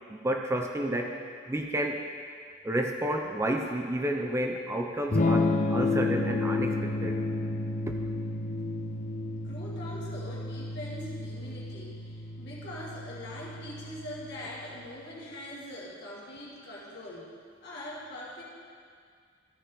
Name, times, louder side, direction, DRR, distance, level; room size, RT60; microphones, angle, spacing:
voice 1, 0.1-1.2 1.5-2.0 2.6-7.2 7.9-8.0, right 1 dB, 15° right, 3 dB, 0.4 m, -31 dB
Electric guitar / Strum, 5.1-14.9, left 2 dB, 40° left, 0.6 m, -31 dB
voice 2, 9.3-17.3 17.6-18.4, left 1 dB, 55° left, -6 dB, 2.1 m, -42 dB
13.5 x 6.6 x 3.9 m, 2.1 s
head